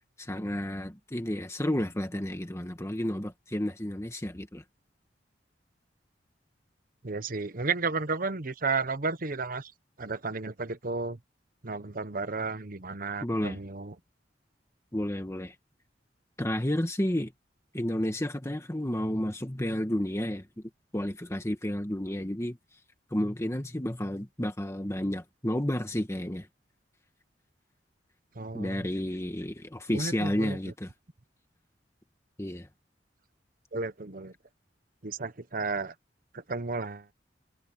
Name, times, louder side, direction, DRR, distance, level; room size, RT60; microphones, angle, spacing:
voice 1, 0.2-4.6 13.2-13.6 14.9-15.5 16.4-17.3 17.7-20.4 20.9-22.6 23.1-26.5 28.5-30.9 32.4-32.7, left 1 dB, 15° left, 1.7 m, -31 dB
voice 2, 7.0-9.7 10.0-11.2 11.6-13.9 28.4-28.9 29.9-30.6 33.7-34.3 35.0-35.9 36.3-37.1, right 4 dB, 50° right, 1.1 m, -33 dB
head